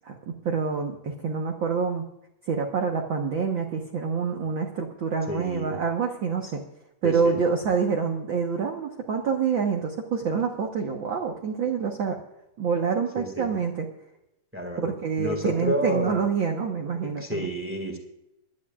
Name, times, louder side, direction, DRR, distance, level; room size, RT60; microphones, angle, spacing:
voice 1, 0.4-2.0 2.4-6.6 7.0-12.2 12.6-13.9 14.8-17.5, right 5 dB, 60° right, 1 dB, 1.3 m, -27 dB
voice 2, 5.3-5.8 7.0-7.4 13.2-13.5 14.5-14.9 15.2-16.2 17.0-18.0, equal, 5° right, 3 dB, 1.5 m, -30 dB
23.5 x 12.0 x 2.5 m, 0.83 s
omnidirectional pair, 3.8 m